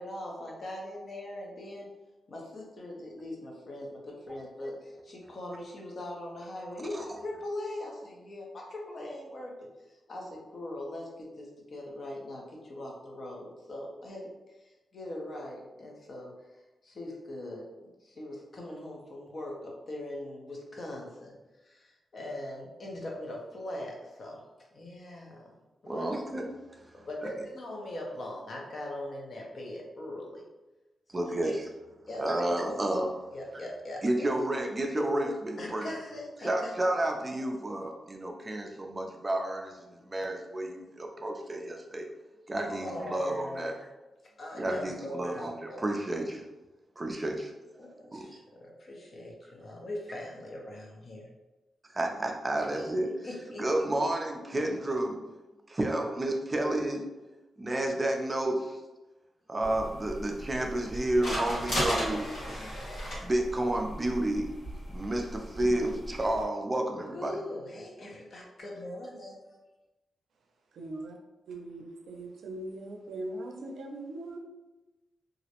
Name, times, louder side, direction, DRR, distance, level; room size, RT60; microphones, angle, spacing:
voice 1, 0.0-1.9 2.3-9.5 10.1-14.3 14.9-16.3 16.8-21.4 21.6-24.4 24.7-25.5 25.8-26.2 26.9-30.4 31.4-31.6 32.1-32.2 33.3-34.3 35.6-36.9 42.6-43.8 44.4-45.8 47.8-51.3 53.2-53.9 67.1-69.4, left 1 dB, 45° left, -1 dB, 0.5 m, -41 dB
voice 2, 25.9-27.0 31.1-31.7 32.1-33.1 34.0-35.9 36.4-42.1 42.5-43.9 44.5-46.4 47.0-47.5 48.1-48.3 51.9-53.3 53.6-55.2 55.7-57.0 57.6-58.8 59.5-64.5 64.9-67.4, right 1 dB, 20° right, 2 dB, 0.3 m, -31 dB
sound 1, 59.6-66.4, equal, 75° left, 1.3 m, -36 dB
voice 3, 70.8-71.2 71.5-74.4, right 1 dB, 90° right, 1 dB, 0.4 m, -40 dB
2.4 x 2.0 x 2.8 m, 1.1 s
wide cardioid pair, 150°, 0 cm